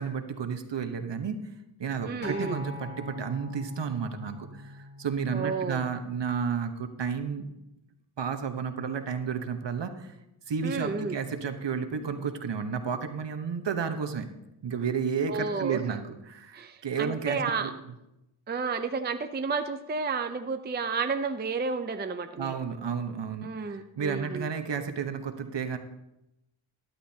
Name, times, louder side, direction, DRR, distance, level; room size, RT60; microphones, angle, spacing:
voice 1, 0.0-1.4 1.8-7.5 8.2-10.1 10.5-14.3 14.6-17.7 22.4-25.8, right 6 dB, 55° right, 7 dB, 1.1 m, -32 dB
voice 2, 2.0-2.6 5.3-5.9 10.6-11.2 15.3-15.8 16.5-17.7 18.5-22.6 23.4-24.5, right 4 dB, 20° right, 8 dB, 0.5 m, -31 dB
Acoustic guitar, 2.2-6.5 7.3-7.4, left 2 dB, 80° left, 2.2 m, -42 dB
13.0 x 11.0 x 2.8 m, 0.90 s
wide cardioid pair, 85°, 50 cm